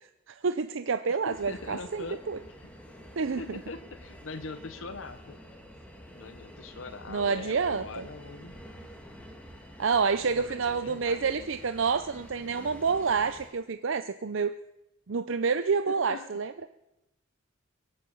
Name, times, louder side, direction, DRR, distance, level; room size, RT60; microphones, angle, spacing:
voice 1, 0.3-2.4 3.2-3.4 7.1-8.0 9.8-14.5 15.1-16.5, right 5 dB, 70° right, 10 dB, 0.6 m, -28 dB
voice 2, 1.1-2.2 3.4-5.4 6.1-8.5 10.2-11.5 15.9-16.4, left 3 dB, 75° left, 10 dB, 1.0 m, -42 dB
sound 1, 1.3-13.5, equal, 5° left, 2.0 m, -48 dB
23.0 x 8.6 x 7.1 m, 0.91 s
head